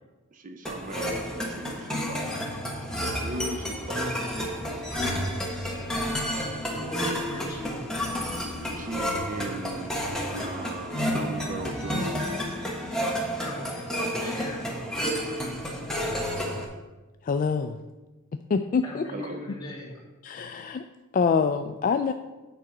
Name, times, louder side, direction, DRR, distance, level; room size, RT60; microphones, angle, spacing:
voice 1, 0.3-2.3 3.2-4.1 5.1-5.3 8.8-12.2 19.1-19.5, right 2 dB, 35° right, 6 dB, 0.6 m, -38 dB
sound 1, 0.7-16.7, equal, 5° left, 1.3 m, -30 dB
voice 2, 5.6-5.9 6.7-7.8 13.4-13.9 14.2-14.6 18.8-20.0, left 1 dB, 20° left, -4 dB, 2.5 m, -39 dB
voice 3, 17.3-17.8 18.5-19.0 20.2-20.8 21.1-22.1, left 5 dB, 40° left, 8 dB, 0.3 m, -25 dB
9.2 x 4.9 x 5.9 m, 1.2 s
head